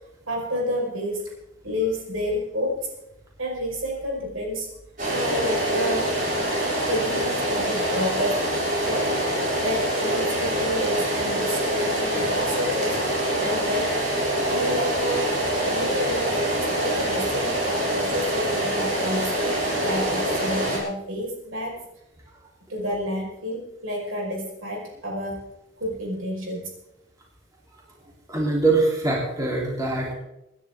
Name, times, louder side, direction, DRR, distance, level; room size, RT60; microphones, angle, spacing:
voice 1, 0.3-1.2 1.6-2.9 3.4-4.7 5.1-6.1 6.8-8.4 8.9-9.2 9.6-13.0 13.4-13.9 14.4-15.4 15.6-19.5 19.8-21.8 22.7-25.4 25.8-26.7, equal, 75° right, -1 dB, 5.4 m, -29 dB
sound 1, 5.0-20.8, right 1 dB, 45° right, 6.7 m, -25 dB
voice 2, 28.3-30.1, right 3 dB, 15° right, -3 dB, 3.6 m, -23 dB
26.0 x 10.5 x 3.8 m, 0.89 s
head